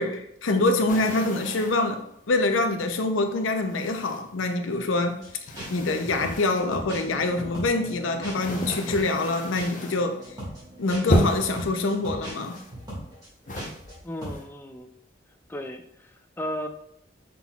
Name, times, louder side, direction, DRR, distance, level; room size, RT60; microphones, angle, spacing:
voice 1, 0.0-5.2 5.7-10.2 10.8-12.6, left 2 dB, 85° left, 6 dB, 0.6 m, -25 dB
sound 1, 0.9-1.9 2.6-2.7 3.7-4.5 4.9-6.7 7.4-10.1 10.4-10.7 11.1-11.7 12.3-13.1 13.5-14.4, equal, 40° left, 0.7 m, -32 dB
sound 2, 5.2-5.3 5.5-8.6 8.9-13.9 14.2-14.4, right 1 dB, 20° right, 1.8 m, -38 dB
sound 3, 7.0-12.1, right 1 dB, 50° right, 0.6 m, -45 dB
voice 2, 14.0-14.9 15.5-16.7, equal, 10° left, 5 dB, 0.3 m, -35 dB
5.7 x 3.8 x 2.3 m, 0.74 s
head